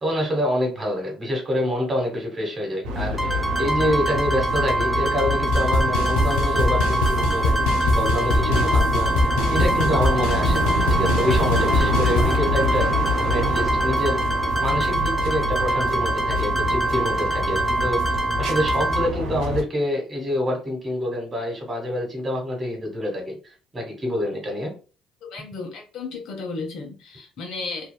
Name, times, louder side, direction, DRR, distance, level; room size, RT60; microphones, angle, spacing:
voice 1, 0.0-7.6 7.9-9.1 9.5-12.9 13.2-14.2 14.6-18.0 18.4-23.3 23.7-24.7, left 1 dB, 35° right, 1 dB, 1.3 m, -26 dB
sound 1, 2.8-19.6, left 1 dB, 80° right, 0.5 m, -26 dB
sound 2, 3.2-19.1, right 2 dB, 10° left, 0.6 m, -25 dB
sound 3, 5.5-12.4, left 2 dB, 90° left, 0.4 m, -24 dB
voice 2, 25.2-27.9, left 3 dB, 70° left, 2 dB, 0.8 m, -34 dB
2.6 x 2.2 x 2.2 m, 0.35 s
supercardioid pair, 75°, 0 cm